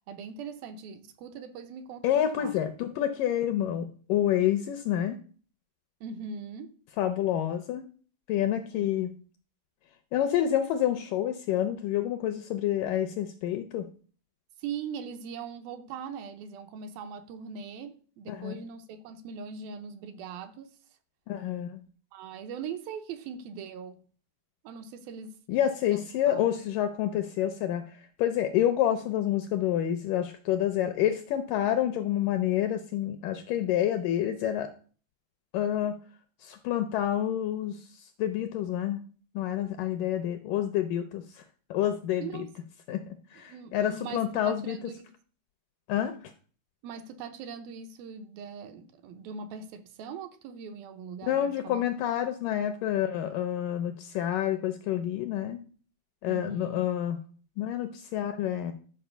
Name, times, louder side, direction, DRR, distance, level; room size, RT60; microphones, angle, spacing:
voice 1, 0.1-2.1 2.3-2.5 6.0-6.7 8.7-8.9 14.6-20.8 22.1-24.0 24.6-25.4 25.9-26.5 42.2-42.5 43.4-45.1 46.8-51.8 56.3-56.8, right 6 dB, 75° right, 2.5 m, -41 dB
voice 2, 2.0-5.2 7.0-7.8 8.3-9.1 10.1-13.9 18.3-18.6 21.3-21.8 25.5-34.7 35.5-36.0 36.4-39.0 39.4-41.4 41.7-42.5 42.9-44.8 45.9-46.3 51.2-55.6 56.2-57.2 57.6-58.7, left 11 dB, 80° left, 1.9 m, -28 dB
11.5 x 4.8 x 6.8 m
omnidirectional pair, 4.5 m